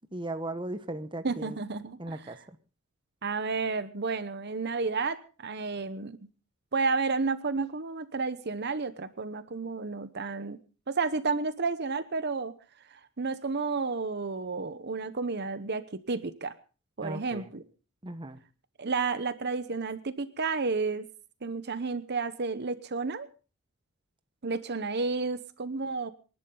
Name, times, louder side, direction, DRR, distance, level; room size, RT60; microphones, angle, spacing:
voice 1, 0.1-1.6 2.0-2.6 17.0-17.5 18.0-18.4, right 1 dB, 25° right, 10 dB, 1.1 m, -37 dB
voice 2, 1.2-2.3 3.2-6.2 6.7-10.6 10.9-12.6 12.9-16.5 17.0-17.6 18.8-21.0 21.4-23.3 24.4-26.1, right 4 dB, 50° right, 13 dB, 0.9 m, -31 dB
26.5 x 11.5 x 3.8 m, 0.36 s
head